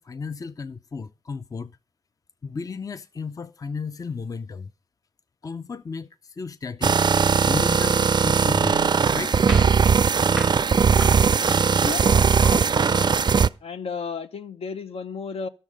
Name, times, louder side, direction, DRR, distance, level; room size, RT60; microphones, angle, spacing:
voice 1, 0.0-1.7 2.4-4.7 5.4-9.5, left 4 dB, 35° left, 0.5 m, -34 dB
sound 1, 6.8-13.5, right 6 dB, 45° right, 0.4 m, -19 dB
sound 2, 9.5-12.4, right 1 dB, 5° right, 0.7 m, -37 dB
voice 2, 11.5-13.1 13.6-15.5, left 5 dB, 70° left, 0.8 m, -34 dB
12.5 x 6.6 x 5.0 m
cardioid pair, 75°, 10 cm